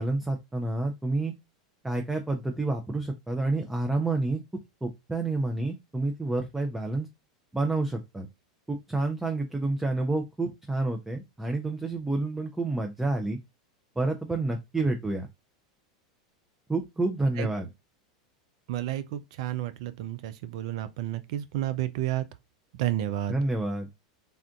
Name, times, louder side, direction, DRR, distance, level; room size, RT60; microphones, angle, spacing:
voice 1, 0.0-1.3 1.8-4.4 4.8-7.1 7.5-8.3 8.7-13.4 14.0-15.3 16.7-17.7 23.3-23.9, right 2 dB, 10° right, 0.5 m, -29 dB
voice 2, 18.7-22.2 22.8-23.4, right 13 dB, 65° right, 0.4 m, -31 dB
3.4 x 2.5 x 2.4 m
hypercardioid pair, 95°, 4 cm